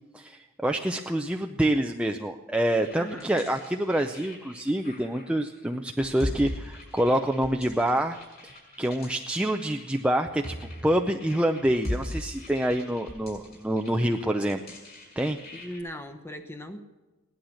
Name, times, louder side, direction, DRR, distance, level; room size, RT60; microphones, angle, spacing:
voice 1, 0.1-8.2 8.4-14.6 15.2-15.4, right 1 dB, 5° right, 4 dB, 0.5 m, -27 dB
sound 1, 2.8-15.8, left 1 dB, 50° left, 6.3 m, -40 dB
voice 2, 2.9-3.4 15.5-16.8, equal, 10° left, 6 dB, 1.0 m, -39 dB
17.5 x 11.5 x 6.4 m, 1.2 s
head